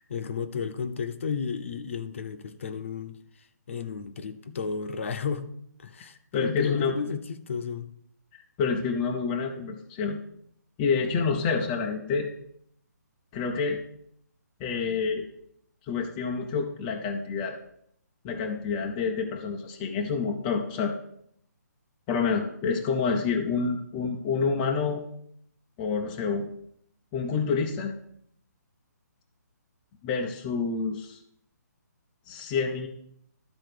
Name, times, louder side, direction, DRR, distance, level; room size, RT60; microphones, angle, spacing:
voice 1, 0.0-3.2 3.7-5.5 5.8-7.9, left 6 dB, 45° left, 10 dB, 0.8 m, -32 dB
voice 2, 6.3-6.9 8.6-10.2 10.8-12.3 13.3-13.8 14.6-15.2 15.9-17.6 18.2-20.9 22.1-25.0 25.8-26.5 27.1-27.9 30.0-31.2 32.3-32.9, left 5 dB, 10° left, 1 dB, 0.4 m, -28 dB
12.5 x 4.3 x 6.5 m, 0.69 s
hypercardioid pair, 170°, 10 cm